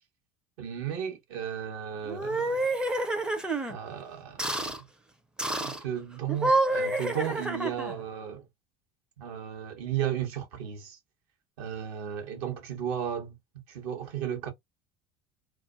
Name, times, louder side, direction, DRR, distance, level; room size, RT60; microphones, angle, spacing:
voice 1, 0.6-2.8 3.7-4.8 5.6-8.4 9.2-11.0 11.6-13.4 13.7-14.5, right 9 dB, 65° right, 0.9 m, -34 dB
sound 1, 2.0-3.7 4.4-4.8 5.4-5.8 6.3-8.0, right 2 dB, 5° right, 0.4 m, -28 dB
2.4 x 2.2 x 2.4 m
figure-of-eight pair, 70°, 20 cm